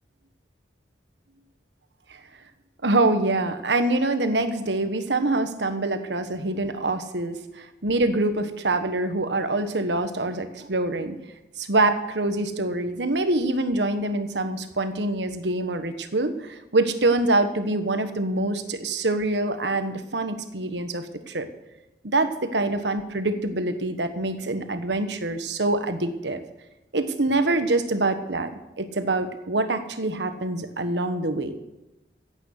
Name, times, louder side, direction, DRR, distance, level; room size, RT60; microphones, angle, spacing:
voice 1, 2.8-11.2 11.6-21.5 22.0-26.4 26.9-28.5 28.8-31.6, right 2 dB, 85° right, 9 dB, 1.3 m, -25 dB
15.5 x 8.9 x 6.6 m, 0.99 s
head